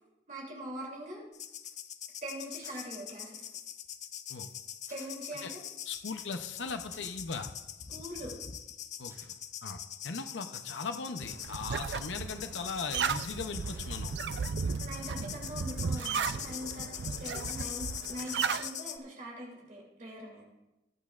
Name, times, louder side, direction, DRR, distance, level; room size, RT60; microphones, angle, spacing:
voice 1, 0.3-1.2 2.2-3.5 4.9-5.6 7.9-8.3 14.7-20.4, equal, 45° right, -3 dB, 2.9 m, -43 dB
sound 1, 1.3-19.0, left 10 dB, 40° left, 0.5 m, -43 dB
sound 2, 2.6-2.9 4.9-5.1 6.9-7.1 9.1-9.3 11.4-11.6 13.6-13.9 15.9-16.2 18.2-18.5, right 1 dB, 15° right, 4.7 m, -54 dB
voice 2, 5.9-7.5 9.0-9.1 9.6-9.8 10.0-14.1, left 4 dB, 90° left, 7 dB, 0.7 m, -38 dB
sound 3, 11.2-18.7, right 6 dB, 70° right, 0.4 m, -35 dB
21.5 x 8.3 x 2.5 m, 0.99 s
head